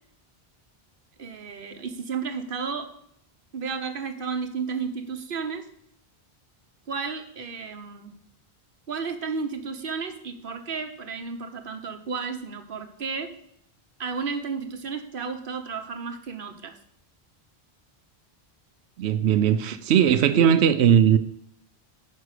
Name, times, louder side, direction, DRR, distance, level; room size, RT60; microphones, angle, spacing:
voice 1, 1.2-2.9 3.5-5.7 6.9-8.1 8.9-13.3 14.0-16.8 20.3-21.0, right 5 dB, 55° right, 1.2 m, -32 dB
voice 2, 19.0-21.2, right 9 dB, 85° right, 0.9 m, -19 dB
9.4 x 4.9 x 6.7 m
omnidirectional pair, 1.1 m